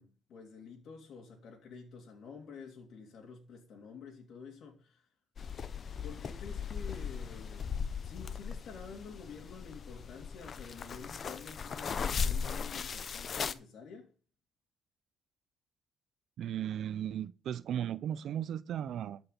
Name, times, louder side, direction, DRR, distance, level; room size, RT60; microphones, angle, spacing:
voice 1, 0.0-5.1 6.0-7.8 8.0-14.1, left 5 dB, 70° left, 3.2 m, -49 dB
sound 1, 5.4-13.5, left 6 dB, 50° left, 0.8 m, -38 dB
voice 2, 16.4-19.2, right 10 dB, 70° right, 0.5 m, -36 dB
13.0 x 6.1 x 6.9 m
cardioid pair, 90°, 0 cm